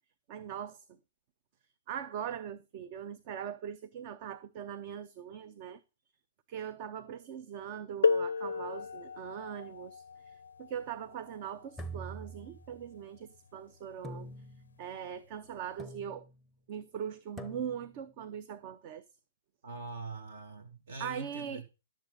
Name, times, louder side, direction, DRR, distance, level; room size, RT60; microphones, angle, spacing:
voice 1, 0.3-0.8 1.9-5.8 6.5-14.3 14.8-16.3 16.7-19.0 21.0-21.6, right 8 dB, 40° right, 0.7 m, -41 dB
sound 1, 8.0-13.5 14.5-14.6 15.4-15.7, left 5 dB, 85° left, 0.4 m, -34 dB
sound 2, 11.8-13.0 14.0-14.8 15.8-16.4 17.4-18.0, right 2 dB, ahead, 0.8 m, -45 dB
voice 2, 19.6-21.6, right 3 dB, 60° right, 2.4 m, -43 dB
12.0 x 7.2 x 4.0 m
hypercardioid pair, 135°, 0 cm